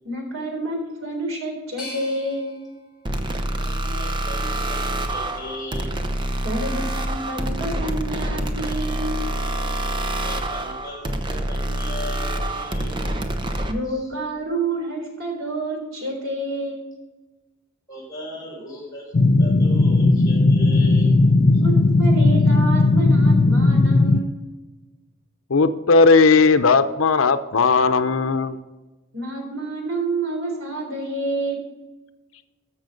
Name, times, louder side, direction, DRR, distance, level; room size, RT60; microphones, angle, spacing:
voice 1, 0.0-2.6 6.4-9.2 13.7-16.8 21.6-21.7 22.0-24.5 29.1-31.6, right 2 dB, 85° right, 1 dB, 3.8 m, -28 dB
sound 1, 1.8-4.7 5.2-6.1, left 3 dB, 5° right, 3.6 m, -44 dB
sound 2, 3.1-13.7, right 1 dB, 25° right, 0.8 m, -26 dB
voice 2, 3.6-4.8 5.1-6.0 10.2-13.0 13.8-14.1 17.9-21.2 21.4-21.6, left 1 dB, 15° left, -4 dB, 4.3 m, -37 dB
sound 3, 19.1-24.2, left 2 dB, 45° left, 0.4 m, -16 dB
voice 3, 25.5-28.6, left 4 dB, 90° left, 11 dB, 0.7 m, -16 dB
14.0 x 6.3 x 5.2 m, 1.2 s
head